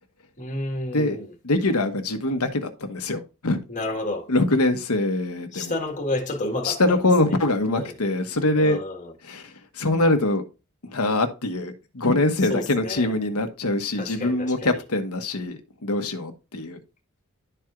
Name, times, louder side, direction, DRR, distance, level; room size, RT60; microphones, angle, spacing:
voice 1, 0.4-1.2 3.7-4.3 5.5-6.8 7.7-7.9 8.5-9.0 12.5-13.1 14.0-14.5, left 2 dB, 35° left, 1.6 m, -30 dB
voice 2, 1.4-3.6 4.3-5.8 6.6-8.8 9.2-10.4 10.8-16.8, left 2 dB, 80° left, 1.2 m, -23 dB
12.0 x 4.5 x 2.5 m
head